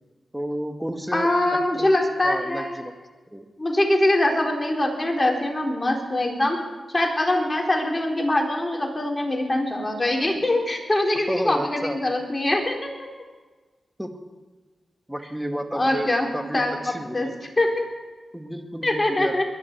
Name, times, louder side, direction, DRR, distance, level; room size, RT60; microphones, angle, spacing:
voice 1, 0.3-1.9 2.2-2.9 3.3-3.5 11.3-12.0 14.0-14.1 15.1-17.3 18.3-19.4, equal, 5° right, 5 dB, 2.1 m, -31 dB
voice 2, 1.1-2.8 3.6-6.6 6.9-13.1 15.7-17.3 17.6-17.9 18.8-19.4, left 1 dB, 25° left, 1 dB, 4.1 m, -23 dB
22.5 x 11.0 x 4.7 m, 1.3 s
cardioid pair, 40°, 0 cm